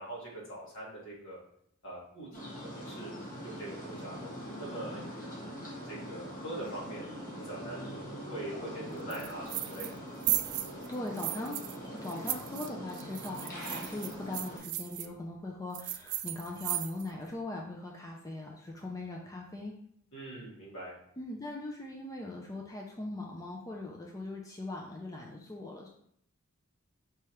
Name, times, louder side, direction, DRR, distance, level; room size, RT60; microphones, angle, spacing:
voice 1, 0.0-1.4 1.8-3.1 3.4-4.3 4.6-7.0 7.4-10.1 20.1-20.9, right 1 dB, 65° left, -5 dB, 1.8 m, -43 dB
sound 1, 2.3-14.6, equal, 40° left, 1.3 m, -43 dB
sound 2, 9.1-10.0 10.2-11.8 12.0-15.1 15.7-17.2, right 14 dB, 80° right, 0.3 m, -35 dB
voice 2, 10.9-19.7 21.2-25.9, left 2 dB, 15° left, -1 dB, 0.4 m, -40 dB
4.6 x 3.2 x 3.0 m, 0.68 s
head